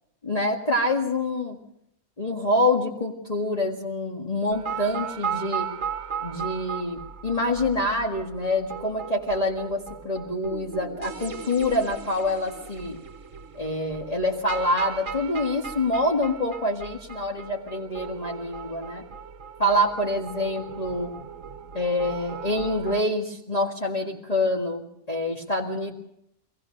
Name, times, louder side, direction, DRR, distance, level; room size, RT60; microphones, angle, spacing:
voice 1, 0.2-1.6 2.2-5.7 6.2-13.0 13.6-19.0 19.6-21.1 21.7-25.9, left 1 dB, 30° left, -2 dB, 1.9 m, -26 dB
sound 1, 4.5-23.0, right 7 dB, 65° right, 1.4 m, -37 dB
23.5 x 18.5 x 6.5 m, 0.77 s
omnidirectional pair, 1.4 m